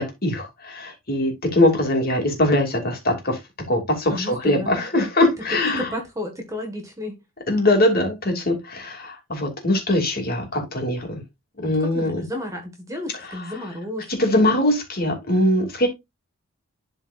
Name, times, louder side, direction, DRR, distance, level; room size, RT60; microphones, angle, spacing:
voice 1, 0.0-3.4 3.7-5.9 7.5-11.2 11.6-12.2 14.1-15.9, left 1 dB, 40° left, 2.6 m, -22 dB
voice 2, 4.1-5.1 5.5-7.2 11.6-14.5, left 1 dB, 15° right, 1.7 m, -32 dB
12.0 x 4.5 x 2.5 m
head